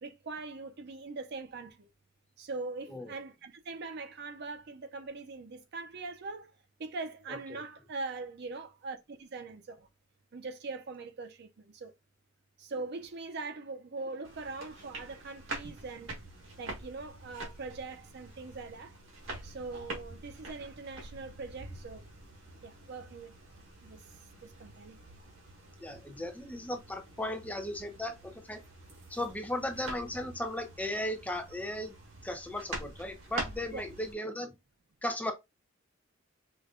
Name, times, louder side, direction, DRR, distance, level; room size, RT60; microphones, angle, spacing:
voice 1, 0.0-1.9 2.4-6.5 6.8-9.9 10.3-11.9 12.6-16.1 16.6-18.9 19.4-22.1 22.6-23.3 23.8-24.0 24.4-25.0 33.7-33.9, right 3 dB, 55° right, 0.5 m, -42 dB
sound 1, 14.2-34.1, right 2 dB, 90° right, 1.6 m, -46 dB
voice 2, 25.8-28.6 29.1-31.9 32.2-34.5 35.0-35.3, left 1 dB, 10° left, 0.6 m, -36 dB
5.0 x 2.2 x 2.4 m
head